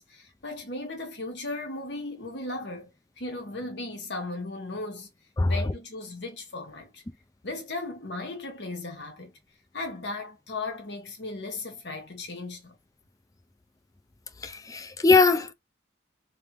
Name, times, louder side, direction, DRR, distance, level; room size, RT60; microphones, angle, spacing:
voice 1, 0.0-2.9 3.2-5.1 5.5-7.0 7.4-9.3 9.7-12.8, left 2 dB, 70° left, 1.3 m, -36 dB
voice 2, 14.4-15.5, left 4 dB, 20° left, 0.4 m, -21 dB
3.4 x 3.4 x 3.0 m
head